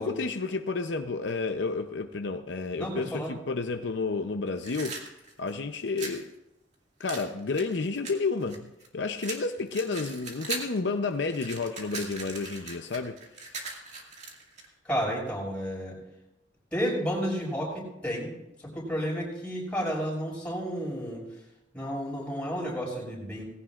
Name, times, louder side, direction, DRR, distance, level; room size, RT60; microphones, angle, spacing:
voice 1, 0.0-5.0 5.4-6.3 7.0-13.2, left 4 dB, 70° left, 0.7 m, -31 dB
voice 2, 2.8-3.3 14.8-16.0 16.7-18.3 18.7-21.3 21.7-23.4, equal, 5° left, 6.0 m, -31 dB
sound 1, 4.6-6.2 7.1-8.9 9.2-10.8 11.1-14.7, right 3 dB, 40° right, 2.1 m, -39 dB
19.0 x 16.5 x 2.5 m
head